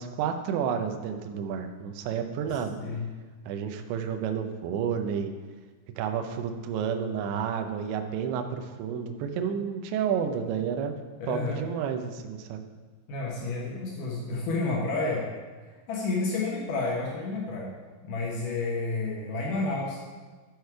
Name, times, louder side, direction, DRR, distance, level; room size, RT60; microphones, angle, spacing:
voice 1, 0.0-2.8 3.5-5.3 6.0-10.9 11.3-12.7, right 7 dB, 80° right, 5 dB, 2.7 m, -30 dB
voice 2, 2.5-3.1 11.3-11.6 13.1-15.3 15.9-17.7 18.0-20.0, left 3 dB, 85° left, -3 dB, 1.8 m, -30 dB
12.0 x 6.7 x 4.6 m, 1.4 s
omnidirectional pair, 5.9 m